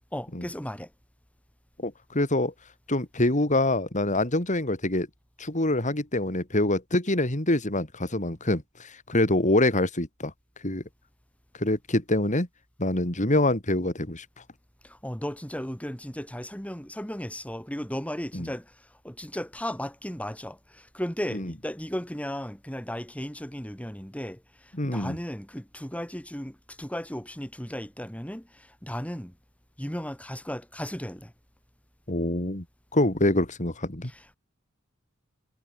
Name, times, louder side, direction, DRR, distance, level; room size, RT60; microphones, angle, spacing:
voice 1, 0.1-0.9 14.8-29.3 29.8-31.3 34.1-34.4, equal, 5° left, 3.9 m, -35 dB
voice 2, 1.8-2.5 2.9-5.1 5.4-10.3 10.6-10.8 11.6-12.5 12.8-14.3 18.3-18.5 21.3-21.5 24.7-25.2 32.1-32.6 32.9-34.1, left 1 dB, 40° left, 3.7 m, -25 dB
head